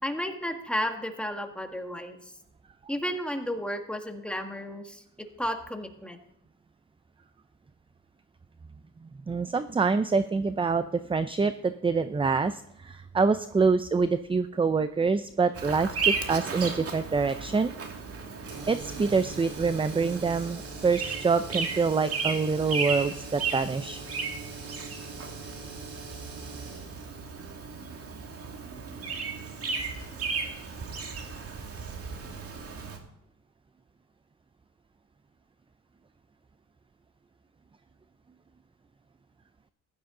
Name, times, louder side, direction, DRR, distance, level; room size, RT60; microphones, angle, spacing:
voice 1, 0.0-2.2 2.9-5.0 5.4-6.2, equal, 5° left, 4 dB, 1.7 m, -32 dB
voice 2, 9.3-17.7 18.7-24.0 27.8-27.9, right 4 dB, 15° right, 12 dB, 0.5 m, -26 dB
Bird vocalization bird call bird song, 15.5-33.0, right 5 dB, 50° right, 2.4 m, -35 dB
sound 1, 18.4-28.5, right 3 dB, 90° right, 5.5 m, -44 dB
15.5 x 11.5 x 3.8 m, 0.79 s
cardioid pair, 90°, 30 cm